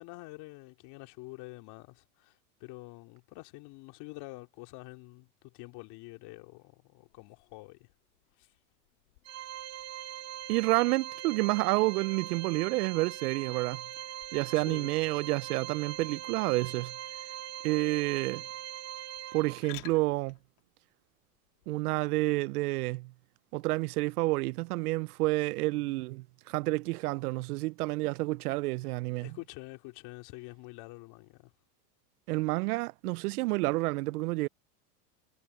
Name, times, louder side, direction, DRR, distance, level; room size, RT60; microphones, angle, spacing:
voice 1, 0.0-7.9 8.4-8.5 14.5-14.9 25.7-26.0 28.8-31.5, left 23 dB, 55° left, 3.0 m, -47 dB
sound 1, 7.0-22.1, left 22 dB, 70° left, 2.8 m, -58 dB
Organ, 9.3-19.9, right 13 dB, 30° right, 1.3 m, -41 dB
voice 2, 10.5-13.8 14.3-16.9 17.6-18.4 19.3-20.4 21.7-23.1 23.5-29.3 32.3-34.5, right 21 dB, 70° right, 0.7 m, -29 dB
hypercardioid pair, 110°, 48 cm